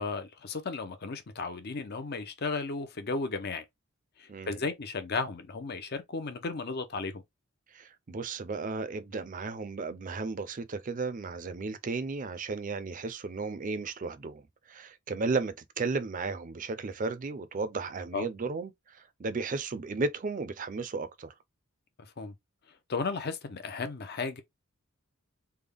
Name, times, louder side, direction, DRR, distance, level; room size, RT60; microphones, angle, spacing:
voice 1, 0.0-3.6 4.2-7.2 18.1-18.3 22.0-22.3 22.9-24.4, left 4 dB, 50° left, 0.6 m, -34 dB
voice 2, 7.7-14.4 14.7-21.3, right 3 dB, 40° right, 0.5 m, -34 dB
3.5 x 2.2 x 3.4 m
head